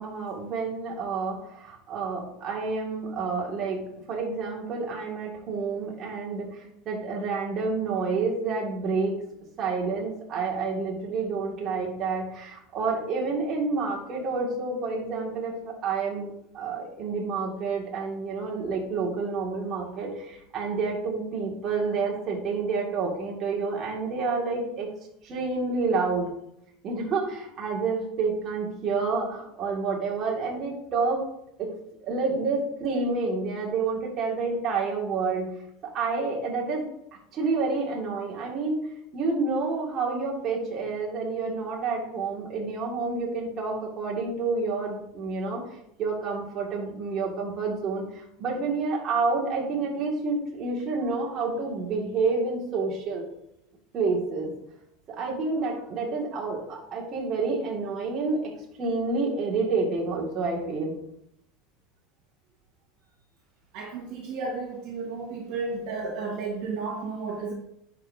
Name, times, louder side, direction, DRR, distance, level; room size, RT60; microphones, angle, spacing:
voice 1, 0.0-3.8 4.1-9.2 9.6-24.9 25.2-26.3 26.8-31.2 31.6-31.7 32.0-35.5 35.8-36.8 37.3-45.6 46.0-53.3 53.9-54.5 55.1-58.5 58.8-60.9, right 4 dB, 35° right, -2 dB, 2.0 m, -29 dB
voice 2, 63.7-67.5, right 4 dB, 60° right, -1 dB, 1.4 m, -33 dB
10.5 x 5.1 x 2.7 m, 0.78 s
supercardioid pair, 140°, 0 cm